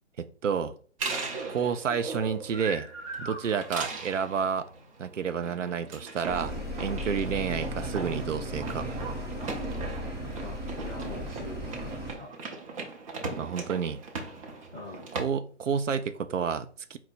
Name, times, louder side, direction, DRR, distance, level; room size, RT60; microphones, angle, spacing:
voice 1, 0.2-0.8 1.5-2.9 3.2-4.7 5.0-9.0 13.4-14.0 15.2-17.0, right 7 dB, 90° right, 0.6 m, -30 dB
sound 1, 1.0-15.2, right 3 dB, 30° right, 0.7 m, -39 dB
sound 2, 6.3-12.2, equal, 10° right, 1.0 m, -36 dB
voice 2, 10.4-12.4 14.7-15.1, left 1 dB, 5° left, 0.3 m, -43 dB
4.4 x 2.1 x 4.1 m
hypercardioid pair, 140°, 36 cm